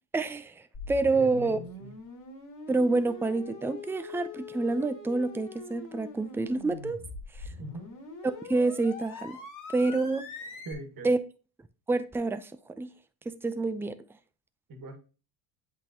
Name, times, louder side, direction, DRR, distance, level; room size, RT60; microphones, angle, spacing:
voice 1, 0.1-1.6 2.7-7.0 8.5-9.4 9.7-10.3 11.0-11.2 11.9-12.5 12.8-12.9 13.3-13.9, right 3 dB, 5° right, 0.5 m, -27 dB
sound 1, 0.7-10.7, left 3 dB, 45° left, 2.4 m, -43 dB
voice 2, 1.0-1.9 7.6-7.9 10.6-11.1 14.7-15.0, right 1 dB, 50° right, 1.8 m, -42 dB
8.0 x 4.0 x 2.9 m
supercardioid pair, 75°, 44 cm